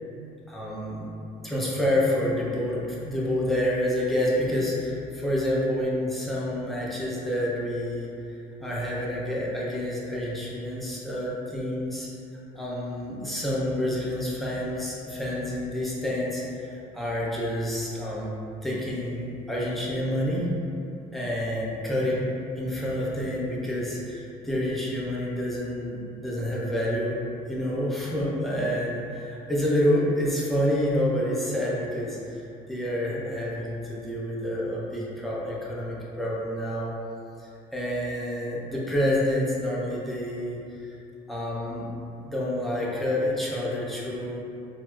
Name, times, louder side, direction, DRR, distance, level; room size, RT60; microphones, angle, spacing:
voice 1, 0.5-1.1 1.4-12.1 12.5-18.3 18.6-20.5 21.1-22.3 22.6-27.2 27.5-32.4 32.7-36.9 37.4-41.0 41.3-41.9 42.2-44.4, left 1 dB, ahead, -7 dB, 0.6 m, -28 dB
4.3 x 2.0 x 2.3 m, 2.7 s
cardioid pair, 110°, 17 cm